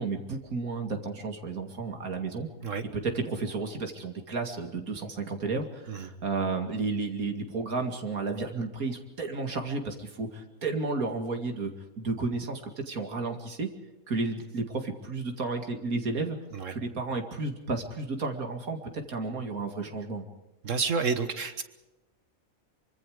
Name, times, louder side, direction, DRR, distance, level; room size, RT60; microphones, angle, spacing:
voice 1, 0.0-2.5 2.9-13.7 14.1-16.4 16.7-20.3, right 3 dB, 85° right, 4 dB, 2.7 m, -32 dB
voice 2, 20.6-21.6, right 5 dB, 65° right, 9 dB, 1.8 m, -29 dB
24.5 x 24.5 x 5.0 m, 1.0 s
omnidirectional pair, 1.5 m